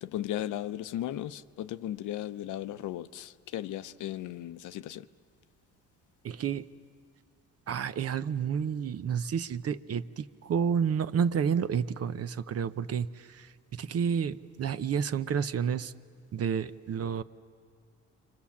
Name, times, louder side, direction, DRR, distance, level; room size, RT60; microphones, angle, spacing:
voice 1, 0.0-5.1, left 12 dB, 80° left, 0.7 m, -36 dB
voice 2, 6.2-6.7 7.7-13.5 13.7-15.9 16.3-17.2, right 7 dB, 55° right, 0.8 m, -30 dB
29.5 x 25.0 x 7.3 m
cardioid pair, 90°, 30 cm